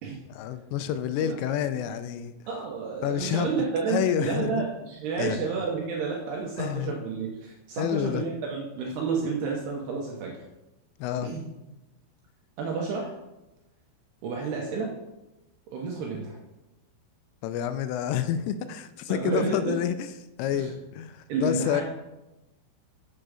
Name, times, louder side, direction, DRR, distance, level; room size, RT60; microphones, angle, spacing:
voice 1, 0.3-2.3 3.0-4.6 5.2-5.4 6.6-7.0 7.8-8.2 11.0-11.3 17.4-20.1 20.4-21.8, left 9 dB, 85° left, 11 dB, 3.1 m, -29 dB
voice 2, 2.5-10.4 11.2-11.5 12.6-13.1 14.2-14.9 15.7-16.4 19.1-19.8 20.5-20.7 21.3-21.8, right 5 dB, 75° right, -1 dB, 2.5 m, -30 dB
7.7 x 5.9 x 6.3 m, 0.97 s
omnidirectional pair, 5.8 m